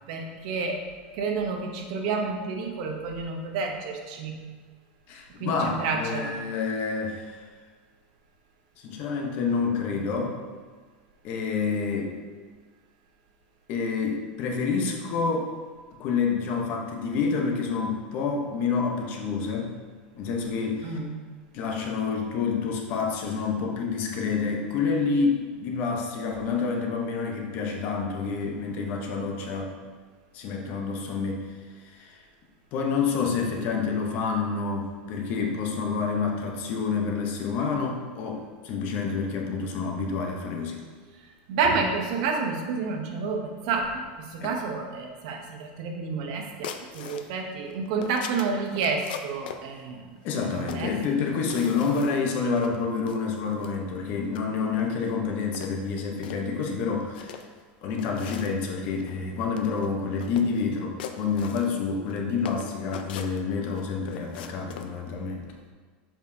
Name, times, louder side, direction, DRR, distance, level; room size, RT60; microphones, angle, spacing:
voice 1, 0.1-0.8 1.1-4.4 5.4-6.4 20.8-21.2 41.5-50.1 50.4-50.9, right 4 dB, 50° right, 3 dB, 0.7 m, -29 dB
voice 2, 5.1-7.4 8.8-10.4 11.2-12.2 13.7-15.5 16.0-19.7 20.1-21.0 21.5-29.7 30.3-31.5 31.9-32.2 32.7-40.8 44.4-44.5 50.2-57.4 57.8-65.4, left 5 dB, 35° left, 1 dB, 0.7 m, -28 dB
sound 1, 46.6-47.3 47.7-49.6 50.3-51.0 51.4-52.3 52.6-52.7 53.1-53.8 54.2-54.4 54.7-55.1 55.5-56.4 57.0-57.6 58.0-58.6 59.0-59.1 59.4-59.9 60.2-60.6 61.0-62.2 62.5-63.8 64.1-64.9, left 8 dB, 85° left, 0.5 m, -41 dB
7.1 x 5.1 x 2.7 m, 1.5 s
supercardioid pair, 175°, 5 cm